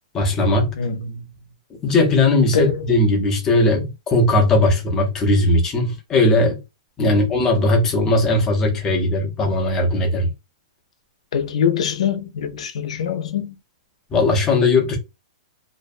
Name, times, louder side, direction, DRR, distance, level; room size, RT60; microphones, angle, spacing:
voice 1, 0.1-0.7 1.8-6.6 7.0-10.3 14.1-15.0, left 2 dB, 10° left, 0.5 m, -18 dB
voice 2, 0.8-1.3 2.5-2.9 7.0-7.3 11.3-13.5, left 7 dB, 60° left, 0.5 m, -24 dB
2.4 x 2.1 x 2.4 m
hypercardioid pair, 175°, 4 cm